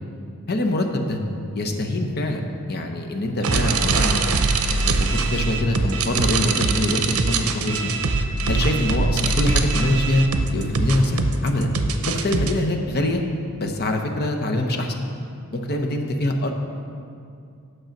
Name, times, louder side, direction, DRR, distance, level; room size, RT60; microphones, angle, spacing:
voice 1, 0.5-1.2 1.5-4.2 4.6-7.9 8.5-10.3 10.5-11.7 12.1-13.2 13.6-15.1 15.5-16.5, left 1 dB, 50° left, 3 dB, 0.9 m, -24 dB
sound 1, 3.4-12.5, right 3 dB, 75° right, 0.6 m, -22 dB
9.1 x 6.4 x 5.2 m, 2.4 s
head